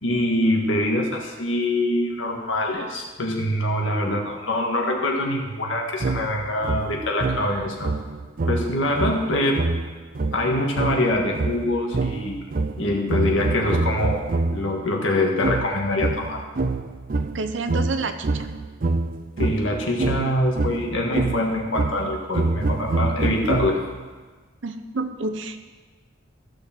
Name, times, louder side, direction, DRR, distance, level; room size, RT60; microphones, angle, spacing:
voice 1, 0.0-7.9 8.5-9.7 10.3-12.4 12.8-16.4 19.4-23.8, left 1 dB, 85° left, 0 dB, 1.7 m, -24 dB
sound 1, 6.0-14.8 15.4-24.1, right 3 dB, 50° right, 0.5 m, -26 dB
voice 2, 17.3-18.5 24.6-25.6, right 3 dB, 75° right, 9 dB, 0.8 m, -29 dB
14.5 x 6.6 x 4.4 m, 1.4 s
head